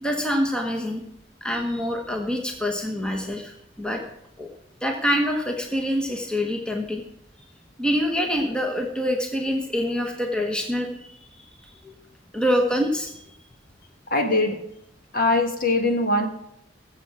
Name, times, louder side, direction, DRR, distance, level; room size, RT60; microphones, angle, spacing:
voice 1, 0.0-1.0 1.4-3.5 3.8-4.0 4.4-4.5 4.8-7.0 7.8-11.1 11.8-11.9 12.3-13.1, equal, 5° left, 2 dB, 1.1 m, -25 dB
voice 2, 14.1-14.6 15.1-16.3, left 2 dB, 45° left, 4 dB, 1.6 m, -21 dB
20.0 x 7.4 x 4.7 m, 0.78 s
head